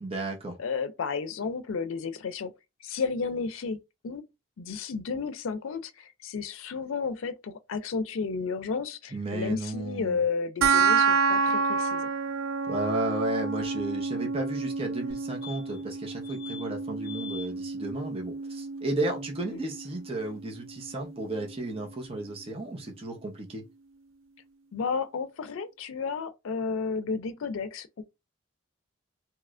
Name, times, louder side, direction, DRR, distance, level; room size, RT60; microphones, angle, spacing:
voice 1, 0.0-0.6 9.1-10.2 12.7-23.6, right 2 dB, 30° right, 0.7 m, -33 dB
voice 2, 0.6-2.5 2.8-3.8 4.0-4.2 4.6-12.1 19.5-19.6 24.7-28.0, left 5 dB, 90° left, 0.4 m, -32 dB
sound 1, 10.6-21.6, right 5 dB, 85° right, 0.4 m, -29 dB
sound 2, 15.1-15.2 15.4-15.9 16.2-16.6 17.0-17.5 19.9-20.0 20.1-20.2, left 7 dB, 5° left, 2.0 m, -43 dB
3.1 x 2.9 x 2.4 m
head